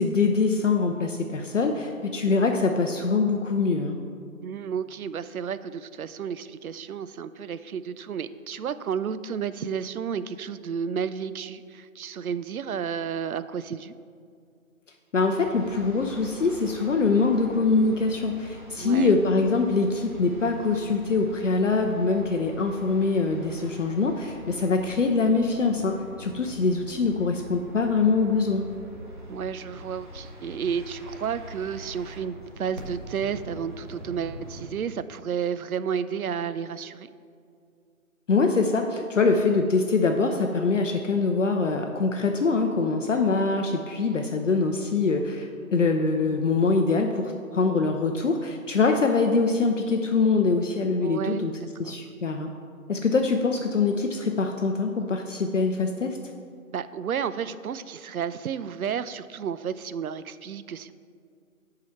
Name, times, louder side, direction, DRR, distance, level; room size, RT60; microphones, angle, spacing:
voice 1, 0.0-4.0 15.1-25.9 26.2-28.6 38.3-51.5 51.8-52.5 52.9-56.2, left 4 dB, 60° left, 4 dB, 0.6 m, -24 dB
voice 2, 4.4-13.9 18.8-19.1 29.3-37.1 51.0-51.5 51.8-52.0 56.7-60.9, right 7 dB, 85° right, 14 dB, 0.5 m, -32 dB
sound 1, 15.4-34.7, equal, 35° right, 0.9 m, -44 dB
7.2 x 4.9 x 5.7 m, 2.3 s
figure-of-eight pair, 170°, 42 cm